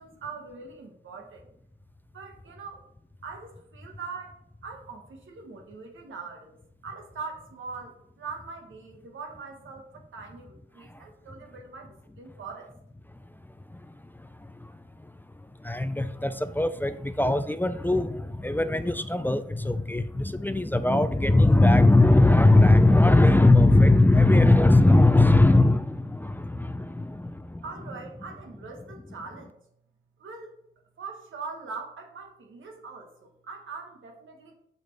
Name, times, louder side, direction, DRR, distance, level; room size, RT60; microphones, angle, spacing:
voice 1, 0.0-1.5 2.1-2.8 3.2-6.6 6.8-12.7 27.6-29.6 30.2-30.5 31.0-34.5, right 4 dB, 85° right, 2 dB, 1.5 m, -42 dB
voice 2, 13.1-27.6, left 2 dB, 10° left, 11 dB, 0.4 m, -20 dB
6.8 x 6.5 x 3.4 m, 0.72 s
cardioid pair, 85°, 20 cm